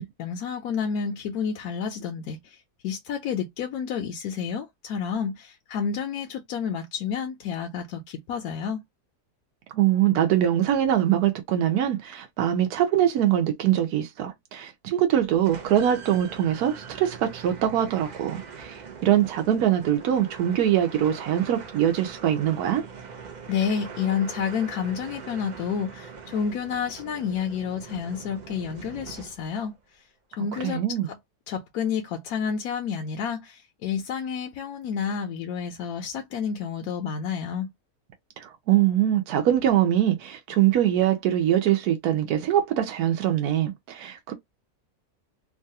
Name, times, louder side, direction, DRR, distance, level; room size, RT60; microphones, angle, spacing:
voice 1, 0.0-8.8 23.5-29.7 30.4-31.2 31.5-37.7, left 7 dB, 75° left, 1.0 m, -30 dB
voice 2, 9.7-22.8 30.6-31.1 38.4-44.3, right 11 dB, 80° right, 1.1 m, -23 dB
sound 1, 15.4-29.7, right 5 dB, 60° right, 0.4 m, -42 dB
3.1 x 2.3 x 2.7 m
omnidirectional pair, 1.6 m